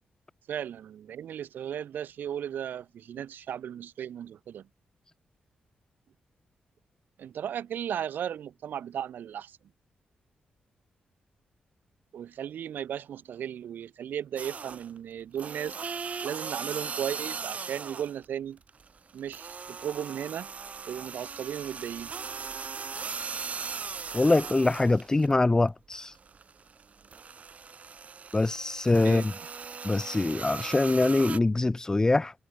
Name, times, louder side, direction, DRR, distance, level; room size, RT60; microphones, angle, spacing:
voice 1, 0.5-4.7 7.2-9.6 12.1-15.8 16.2-18.6 19.1-20.5 20.9-22.1 29.0-29.2, right 9 dB, 80° right, 2.1 m, -36 dB
sound 1, 14.4-15.0 15.3-18.2 18.6-25.3 25.7-31.4, right 5 dB, 45° right, 2.4 m, -39 dB
voice 2, 24.1-26.1 28.3-29.3 29.8-32.3, left 2 dB, 20° left, 0.7 m, -24 dB
cardioid pair, 90°, 3 cm